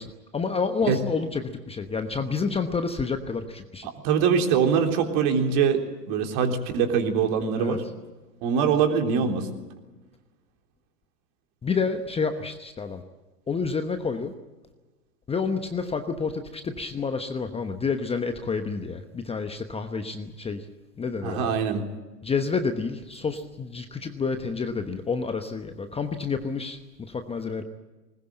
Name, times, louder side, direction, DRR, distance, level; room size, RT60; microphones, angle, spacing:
voice 1, 0.0-3.9 7.6-7.8 11.6-13.0 13.5-14.3 15.3-20.7 21.0-21.6 22.2-27.6, left 5 dB, 10° left, 8 dB, 1.0 m, -29 dB
voice 2, 3.8-5.8 6.1-7.8 8.4-9.5 21.2-21.8, right 6 dB, 45° right, 4 dB, 3.7 m, -23 dB
20.0 x 20.0 x 8.9 m, 1.2 s
hypercardioid pair, 110°, 48 cm